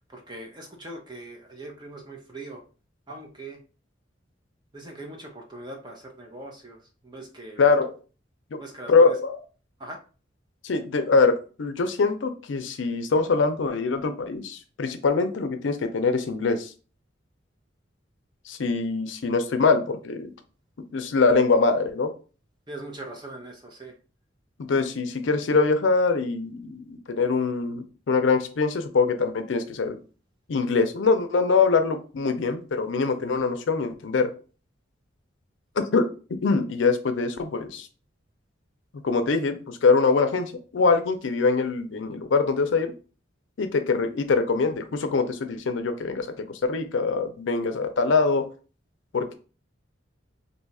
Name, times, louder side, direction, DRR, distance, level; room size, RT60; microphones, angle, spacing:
voice 1, 0.1-2.6 3.1-3.6 4.7-6.8 7.0-7.7 8.5-9.1 9.8-10.0 22.7-23.9, right 2 dB, 25° right, 2 dB, 0.6 m, -41 dB
voice 2, 8.9-9.4 10.6-16.7 18.5-20.3 20.9-22.1 24.6-30.0 30.5-34.3 35.8-36.1 36.4-37.9 39.0-42.9 43.6-48.5 49.1-49.3, left 4 dB, 75° left, 8 dB, 0.5 m, -23 dB
2.8 x 2.3 x 4.1 m, 0.36 s
head